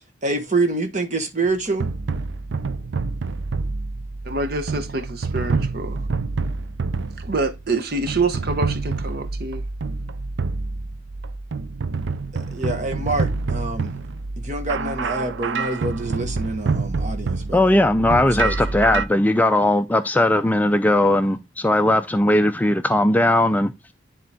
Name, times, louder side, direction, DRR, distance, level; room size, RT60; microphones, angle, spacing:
voice 1, 0.2-1.9 12.3-13.9 14.4-17.6 18.4-18.5, right 2 dB, 40° right, 1.3 m, -26 dB
sound 1, 1.4-19.1, right 4 dB, 75° right, 0.5 m, -27 dB
voice 2, 4.2-6.0 7.2-9.6, right 3 dB, 55° right, 0.9 m, -26 dB
voice 3, 17.5-23.9, left 1 dB, 10° left, 0.3 m, -18 dB
10.0 x 3.7 x 3.4 m
head